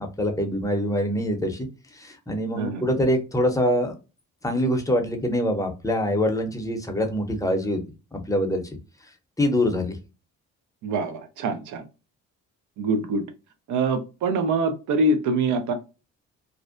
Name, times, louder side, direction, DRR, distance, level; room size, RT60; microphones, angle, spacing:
voice 1, 0.0-1.7 1.9-4.0 4.4-7.8 8.1-8.6 9.4-10.0, equal, 10° left, 4 dB, 0.6 m, -24 dB
voice 2, 10.8-11.8 12.8-13.2 13.7-15.7, right 2 dB, 80° right, 8 dB, 0.6 m, -24 dB
2.5 x 2.1 x 2.4 m, 0.30 s
cardioid pair, 90°, 30 cm